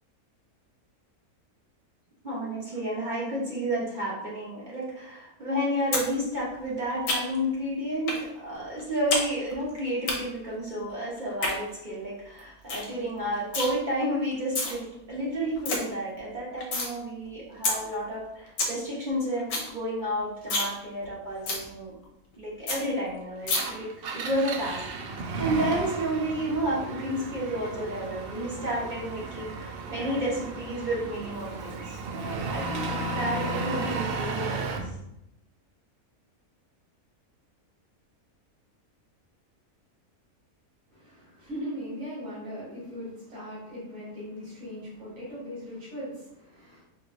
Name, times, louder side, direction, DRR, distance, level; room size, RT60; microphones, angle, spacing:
voice 1, 2.2-21.9 22.4-34.8, right 1 dB, 35° right, -6 dB, 1.1 m, -31 dB
sound 1, 5.9-6.1 6.4-7.5 8.1-8.2 8.6-9.3 9.5-10.1 11.2-11.5 12.0-12.1 12.4-12.5 12.7-12.9 13.2-13.7 14.3-14.7 15.2-15.3 15.4-15.8 16.2-16.9 17.3-17.4 17.6-17.8 18.1-18.2 18.4-18.7 19.1-19.2 19.4-19.7 20.0-20.1 20.4-20.7 21.0-21.1 21.5-21.6 22.0-22.1 22.3-22.4 22.7-22.8 23.5-23.6, left 3 dB, 65° left, 1.2 m, -28 dB
Engine, 23.4-34.9, right 3 dB, 90° right, 0.5 m, -34 dB
voice 2, 40.9-46.8, equal, 60° right, -8 dB, 2.0 m, -39 dB
4.6 x 3.1 x 2.5 m, 0.83 s
omnidirectional pair, 1.6 m